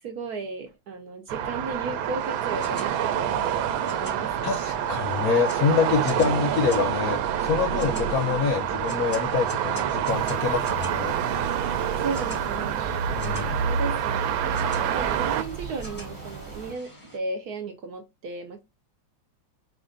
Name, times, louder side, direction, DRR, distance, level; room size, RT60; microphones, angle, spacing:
voice 1, 0.0-4.6 7.7-8.2 12.0-18.6, right 4 dB, 65° right, 1.0 m, -35 dB
sound 1, 1.3-15.4, right 9 dB, 85° right, 1.3 m, -27 dB
sound 2, 2.2-17.2, left 2 dB, 25° left, 0.8 m, -45 dB
voice 2, 4.4-11.2 13.1-13.6, left 6 dB, 70° left, 0.9 m, -26 dB
sound 3, 10.1-16.7, right 4 dB, 30° right, 0.9 m, -39 dB
5.0 x 2.5 x 3.7 m
omnidirectional pair, 2.1 m